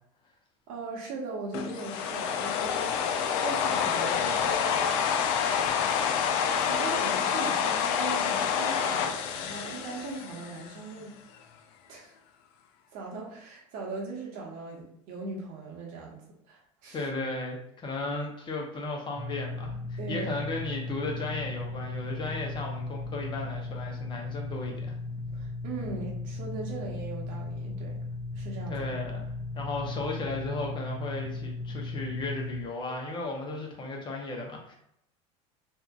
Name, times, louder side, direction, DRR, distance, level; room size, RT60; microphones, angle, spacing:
voice 1, 0.7-5.0 6.0-6.1 6.6-11.2 11.9-12.1 12.9-16.2 16.5-17.0 20.0-20.3 25.3-28.0 28.3-28.9, right 3 dB, 60° right, -2 dB, 1.1 m, -39 dB
sound 1, 1.5-10.8, left 7 dB, 70° left, 0.4 m, -28 dB
voice 2, 16.9-24.9 28.7-29.3 29.5-34.7, left 2 dB, 30° left, 0 dB, 0.8 m, -35 dB
sound 2, 19.2-32.6, left 3 dB, 5° right, 0.5 m, -36 dB
2.8 x 2.4 x 2.4 m, 0.74 s
supercardioid pair, 110°, 16 cm